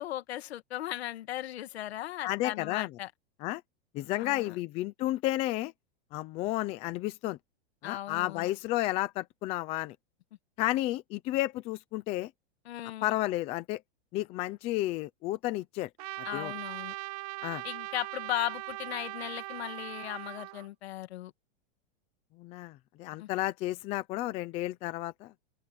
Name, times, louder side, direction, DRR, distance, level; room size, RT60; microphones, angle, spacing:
voice 1, 0.0-3.1 4.2-4.6 7.8-8.5 12.7-13.2 16.2-16.9 17.6-21.3 23.2-23.3, left 13 dB, 70° left, 2.4 m, -37 dB
voice 2, 2.2-2.9 3.4-3.6 3.9-5.7 6.1-7.4 7.8-10.0 10.6-12.3 13.0-13.8 14.1-15.9 16.3-16.5 17.4-17.6 22.4-25.3, left 16 dB, 20° left, 0.7 m, -32 dB
Trumpet, 16.0-20.7, right 20 dB, 35° right, 1.4 m, -40 dB
supercardioid pair, 180°, 32 cm